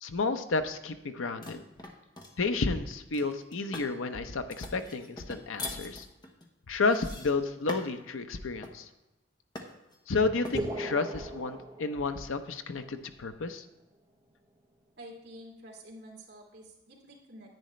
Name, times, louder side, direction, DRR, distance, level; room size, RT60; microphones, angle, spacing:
voice 1, 0.0-1.6 2.4-6.1 6.7-8.9 10.1-13.6, left 3 dB, 85° left, 9 dB, 0.7 m, -31 dB
sound 1, 1.4-2.4 3.1-4.0 4.5-8.0 8.6-8.9 9.6-10.0 10.4-10.6, left 2 dB, 20° left, 1.0 m, -43 dB
sound 2, 10.5-12.5, right 1 dB, 20° right, 0.9 m, -37 dB
voice 2, 15.0-17.5, equal, 55° right, -3 dB, 2.6 m, -49 dB
10.5 x 9.2 x 3.2 m, 1.0 s
head